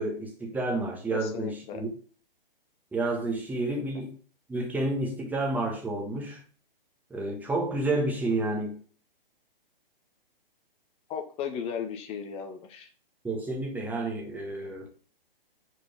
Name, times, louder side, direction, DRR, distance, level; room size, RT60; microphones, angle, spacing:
voice 1, 0.0-1.9 2.9-4.1 4.5-6.4 7.1-8.8 13.2-14.9, right 2 dB, 5° right, 1.4 m, -30 dB
voice 2, 1.1-1.8 3.7-3.8 11.1-12.9, left 7 dB, 20° left, 0.9 m, -36 dB
5.1 x 4.5 x 5.6 m
hypercardioid pair, 130°, 29 cm